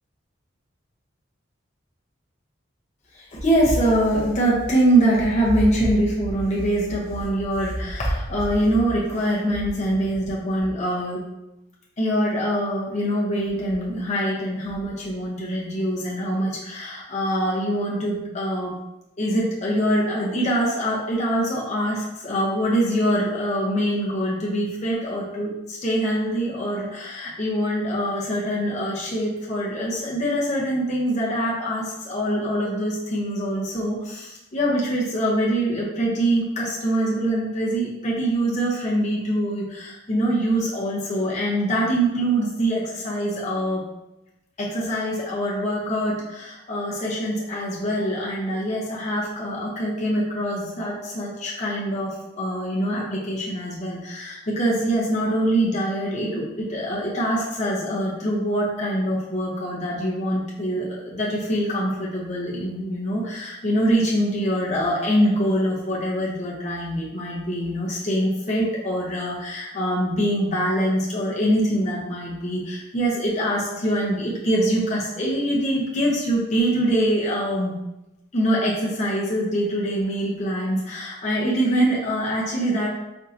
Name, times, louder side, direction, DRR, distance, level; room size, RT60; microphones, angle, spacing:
voice 1, 3.1-11.2 12.0-18.7 19.2-43.8 44.6-77.8 78.3-82.9, right 1 dB, 35° left, -5 dB, 0.7 m, -24 dB
4.4 x 2.7 x 2.5 m, 0.93 s
head